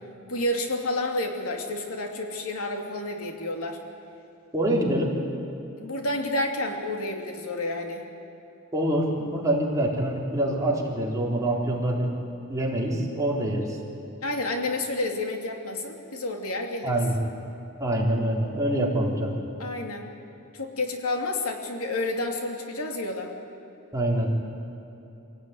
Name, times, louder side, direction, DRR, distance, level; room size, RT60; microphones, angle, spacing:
voice 1, 0.3-3.8 4.7-4.8 5.8-8.0 14.2-16.9 19.6-20.1 20.5-23.4, left 2 dB, 80° left, 3 dB, 2.9 m, -30 dB
voice 2, 4.5-5.1 8.7-12.1 12.5-13.8 16.8-17.2 17.8-19.4 23.9-24.3, right 1 dB, 15° right, -3 dB, 3.9 m, -25 dB
24.5 x 17.5 x 9.6 m, 2.9 s
head